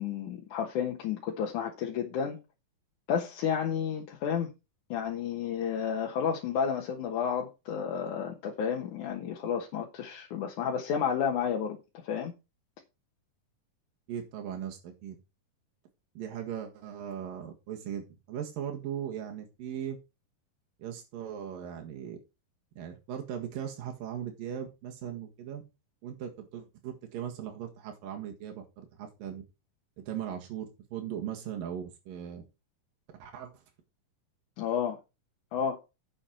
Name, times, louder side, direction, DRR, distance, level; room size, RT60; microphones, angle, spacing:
voice 1, 0.0-2.4 3.1-4.5 4.9-11.8 12.0-12.3 34.6-35.0 35.5-35.8, left 7 dB, 65° left, 2.7 m, -31 dB
voice 2, 14.1-15.2 16.2-20.0 20.8-22.2 22.8-25.6 26.0-29.4 30.1-32.4 33.2-33.6, right 9 dB, 80° right, 3.4 m, -38 dB
10.0 x 7.4 x 4.4 m
omnidirectional pair, 3.9 m